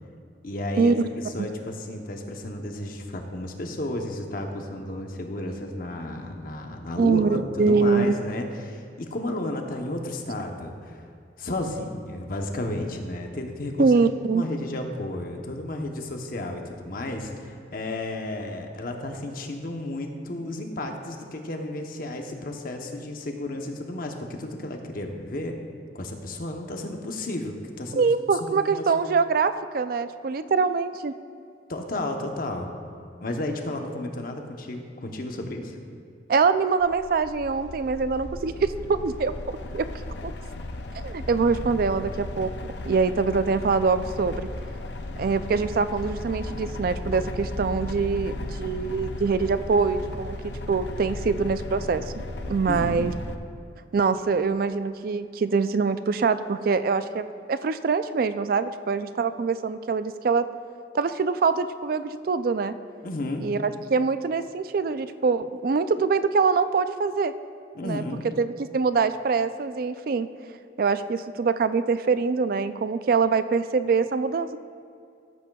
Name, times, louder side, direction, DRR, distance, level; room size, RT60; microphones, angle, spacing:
voice 1, 0.4-11.0 11.4-13.9 14.3-25.6 25.9-28.0 28.4-28.9 31.7-32.7 33.2-35.8 52.7-53.1 63.0-63.5 67.7-68.2, left 1 dB, 50° left, 3 dB, 0.9 m, -33 dB
voice 2, 7.0-8.1 13.8-14.5 28.0-31.1 36.3-39.3 39.7-39.8 40.2-40.3 41.0-42.5 42.9-44.5 45.2-53.1 53.9-60.5 60.9-62.7 63.4-67.3 67.8-68.0 68.4-70.3 70.8-74.6, right 5 dB, 50° right, 12 dB, 0.3 m, -24 dB
sound 1, 36.8-53.4, left 2 dB, 70° left, 0.5 m, -35 dB
15.0 x 8.3 x 2.3 m, 2.4 s
head